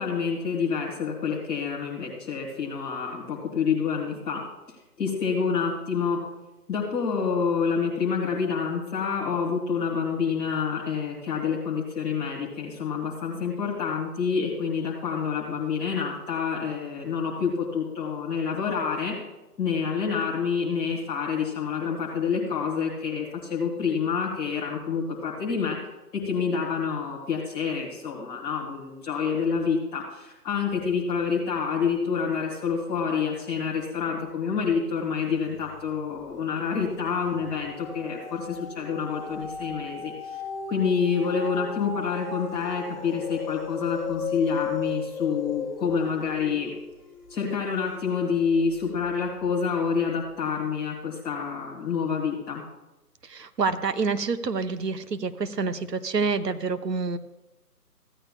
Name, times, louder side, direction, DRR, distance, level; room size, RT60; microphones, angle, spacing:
voice 1, 0.0-4.4 5.0-6.2 6.7-19.2 19.6-25.8 26.2-40.4 40.7-46.7 47.3-52.6, left 6 dB, 5° left, -8 dB, 1.2 m, -28 dB
sound 1, 35.5-36.0 36.4-48.8 49.4-49.5, left 5 dB, 30° left, 2.2 m, -37 dB
voice 2, 53.3-57.2, right 4 dB, 80° right, 10 dB, 0.9 m, -27 dB
16.0 x 10.0 x 2.2 m, 1.0 s
figure-of-eight pair, 160°, 47 cm